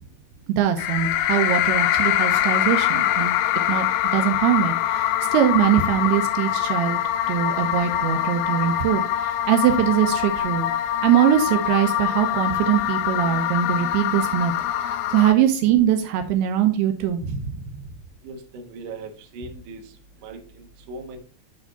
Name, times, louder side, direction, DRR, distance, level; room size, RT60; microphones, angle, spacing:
voice 1, 0.6-3.3 3.7-3.9 4.1-7.0 7.3-14.5 14.8-17.6, right 10 dB, 80° right, 6 dB, 2.7 m, -22 dB
sound 1, 0.8-15.3, left 12 dB, 90° left, 2.7 m, -24 dB
voice 2, 18.2-19.8 20.2-21.2, right 3 dB, 65° right, 3 dB, 2.3 m, -39 dB
10.5 x 3.5 x 4.0 m, 0.39 s
omnidirectional pair, 4.7 m